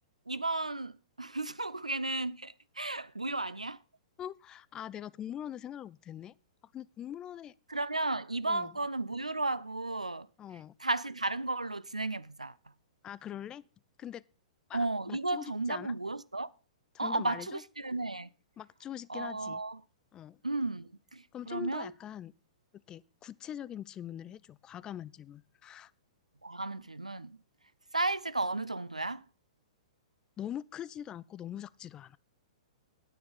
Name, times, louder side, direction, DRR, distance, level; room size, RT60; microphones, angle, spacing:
voice 1, 0.3-0.9 1.2-3.8 7.7-10.3 10.8-12.5 14.7-16.5 17.0-18.3 19.1-19.8 20.4-21.2 21.5-21.9 26.4-27.3 27.9-29.2, right 2 dB, 90° right, 0.6 m, -34 dB
voice 2, 4.2-6.3 6.7-7.5 8.5-8.8 10.4-10.7 13.0-13.6 14.0-14.2 14.7-16.0 16.9-17.6 18.6-19.6 20.1-20.4 21.3-22.3 22.9-25.9 30.4-32.2, left 10 dB, 20° left, 0.4 m, -43 dB
9.5 x 9.4 x 5.4 m
figure-of-eight pair, 110°, 4 cm